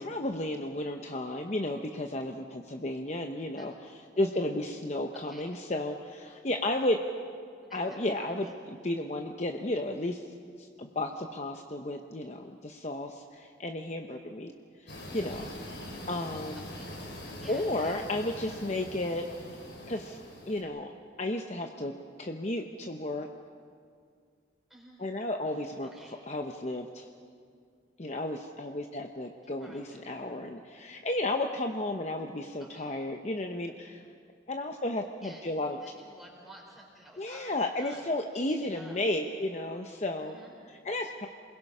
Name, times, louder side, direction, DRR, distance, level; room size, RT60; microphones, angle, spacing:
voice 1, 0.0-3.7 4.2-7.0 7.7-10.3 10.6-14.5 15.1-15.5 16.1-16.6 17.5-19.3 19.9-20.2 20.5-20.9 21.2-21.9 22.2-23.3 25.0-25.9 26.3-27.1 28.0-34.0 34.5-35.8 37.2-40.4 40.7-41.3, left 1 dB, 35° left, 4 dB, 0.8 m, -33 dB
voice 2, 5.1-5.5 7.6-8.6 16.8-16.9 17.4-18.1 18.4-18.6 24.7-25.0 25.8-26.2 29.6-30.3 32.6-33.0 35.2-35.5 35.8-39.0 40.2-40.6, right 1 dB, ahead, -2 dB, 4.3 m, -53 dB
sound 1, 14.9-20.6, left 1 dB, 70° left, 5.0 m, -43 dB
28.0 x 21.5 x 5.6 m, 2.2 s
head